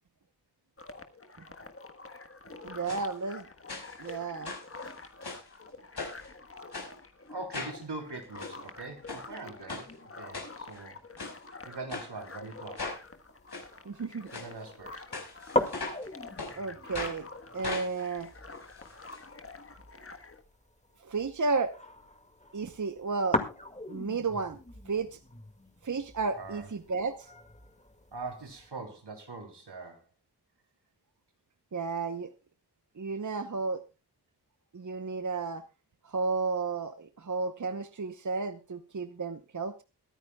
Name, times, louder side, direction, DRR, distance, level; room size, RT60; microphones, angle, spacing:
sound 1, 0.8-20.4, left 3 dB, 35° left, 1.4 m, -47 dB
voice 1, 2.6-3.5 4.0-4.5 13.9-14.3 16.6-17.3 17.5-18.3 21.0-21.7 22.5-23.4 23.9-24.6 24.9-25.2 25.8-27.3 31.7-32.3 33.0-33.8 34.7-35.6 36.0-39.8, right 4 dB, 50° right, 10 dB, 0.9 m, -32 dB
sound 2, 2.9-3.0 3.7-4.1 4.4-5.5 6.0-6.3 6.7-6.9 7.5-7.8 8.2-8.5 9.1-9.2 9.7-9.9 10.3-10.8 11.2-11.4 11.9-12.1 12.8-13.0 13.5-13.6 14.3-14.5 15.1-16.1 16.4-16.5 16.9-17.2 17.6-19.2 19.5-19.6 19.8-19.9, left 3 dB, 70° left, 5.0 m, -39 dB
voice 2, 7.3-11.0 11.6-12.9 14.3-15.1 26.3-26.7 28.1-30.0, right 3 dB, 80° right, 4 dB, 3.3 m, -42 dB
sound 3, 12.9-28.7, left 1 dB, 15° left, 2.0 m, -39 dB
22.5 x 9.9 x 2.3 m, 0.30 s
wide cardioid pair, 85°, 40 cm